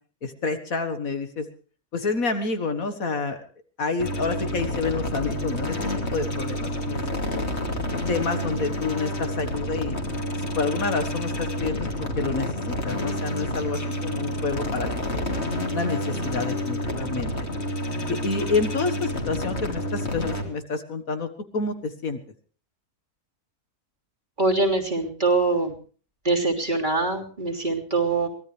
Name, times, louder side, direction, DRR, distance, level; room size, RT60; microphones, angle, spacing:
voice 1, 0.2-1.5 1.9-3.4 3.8-7.0 7.3-7.5 8.1-10.0 10.3-11.9 12.2-15.3 15.7-17.3 18.1-21.3 21.5-22.2, left 4 dB, 60° left, 8 dB, 2.0 m, -28 dB
sound 1, 4.0-20.4, left 1 dB, 45° left, 3.1 m, -29 dB
voice 2, 24.4-25.7 26.2-28.3, right 3 dB, 30° right, 1 dB, 3.4 m, -23 dB
23.5 x 17.0 x 3.3 m, 0.40 s
omnidirectional pair, 1.6 m